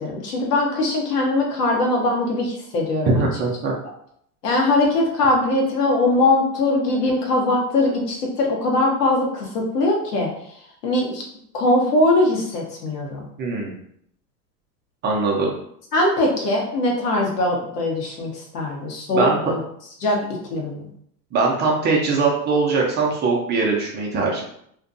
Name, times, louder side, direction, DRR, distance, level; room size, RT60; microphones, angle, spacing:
voice 1, 0.0-3.2 4.4-10.3 10.8-11.2 11.5-13.2 15.9-19.6 20.0-20.2 20.5-20.9, left 2 dB, 85° left, 0 dB, 1.0 m, -21 dB
voice 2, 3.1-3.7 13.4-13.8 15.0-15.5 19.1-19.4 21.3-24.4, right 3 dB, 25° right, -2 dB, 0.4 m, -21 dB
2.5 x 2.2 x 2.5 m, 0.69 s
hypercardioid pair, 110°, 46 cm